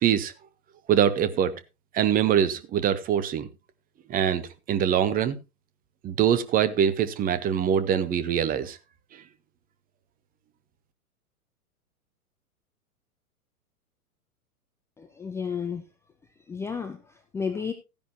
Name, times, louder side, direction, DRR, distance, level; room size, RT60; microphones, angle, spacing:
voice 1, 0.0-0.3 0.9-1.5 1.9-3.5 4.1-5.4 6.0-8.8 9.1-9.2, right 9 dB, 20° right, 13 dB, 0.9 m, -23 dB
voice 2, 15.0-15.8 16.5-17.7, left 6 dB, 5° left, 6 dB, 0.5 m, -32 dB
15.0 x 10.5 x 2.8 m, 0.27 s
figure-of-eight pair, 105°, 45 cm